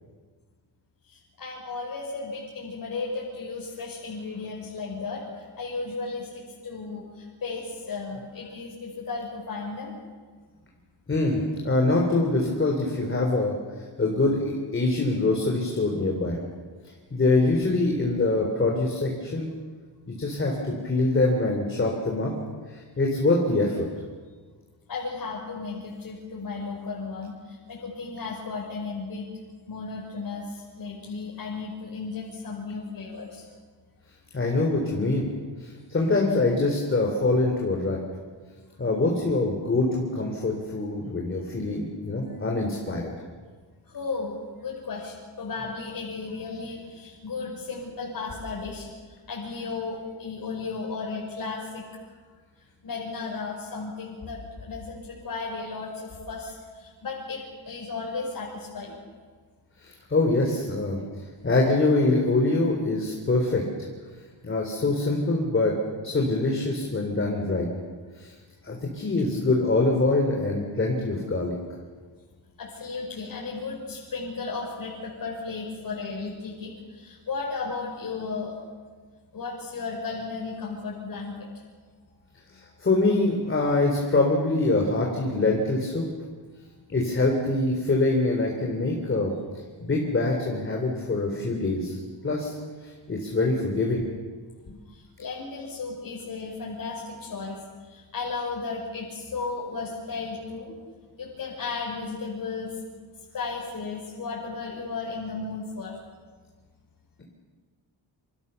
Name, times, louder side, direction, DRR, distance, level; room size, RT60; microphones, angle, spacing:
voice 1, 1.1-9.9 13.9-14.0 24.9-29.3 29.7-33.5 42.3-42.4 43.8-51.9 52.8-59.0 72.6-78.6 79.3-81.5 94.9-100.8 101.2-102.8 103.3-106.0, left 4 dB, 50° left, -3 dB, 5.7 m, -35 dB
voice 2, 11.1-11.4 11.6-13.6 14.0-16.4 17.1-19.5 20.1-22.3 22.7-23.9 34.3-35.3 35.6-38.0 38.8-43.1 59.8-61.0 61.4-63.6 64.4-65.7 66.0-67.7 68.2-68.3 68.6-71.5 82.5-86.1 86.9-89.3 89.8-92.0 92.2-92.6 92.8-94.1 94.7-94.8, left 2 dB, 25° left, 0 dB, 3.6 m, -24 dB
28.0 x 27.0 x 7.0 m, 1.5 s
wide cardioid pair, 170°, 44 cm